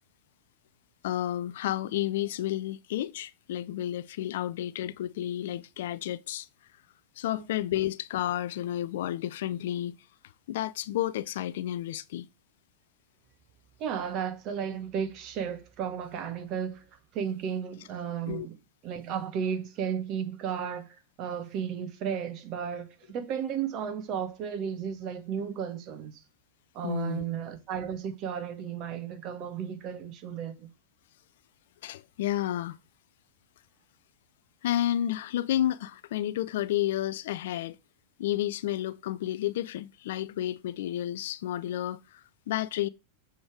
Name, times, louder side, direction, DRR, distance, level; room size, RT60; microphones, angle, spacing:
voice 1, 1.0-6.5 7.2-10.0 10.5-12.3 18.3-18.5 26.8-27.2 31.8-32.8 34.6-37.8 38.2-42.9, left 12 dB, 55° left, 0.3 m, -31 dB
voice 2, 13.8-16.8 17.1-18.5 18.8-26.2 26.7-30.7, right 8 dB, 40° right, 1.2 m, -34 dB
6.8 x 3.5 x 4.7 m
figure-of-eight pair, 90°, 0 cm